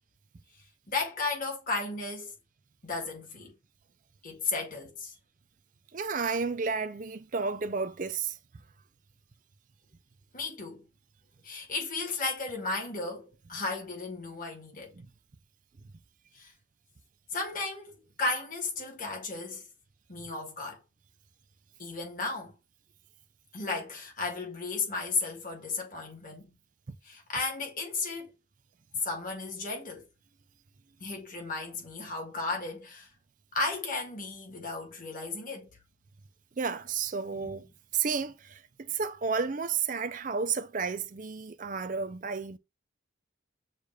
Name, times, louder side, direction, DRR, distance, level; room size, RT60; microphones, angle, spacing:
voice 1, 0.9-2.3 2.8-3.5 4.2-5.1 10.3-10.9 11.4-15.0 16.3-16.5 17.3-19.7 20.1-20.8 21.8-22.5 23.5-26.5 27.1-28.3 29.0-30.1 31.0-33.1 33.5-35.7 37.3-37.5, left 3 dB, 45° left, 1.6 m, -34 dB
voice 2, 5.9-8.4 14.9-15.1 15.8-15.9 36.6-37.7 37.9-42.6, right 5 dB, 40° right, 0.5 m, -32 dB
6.5 x 2.5 x 3.2 m
head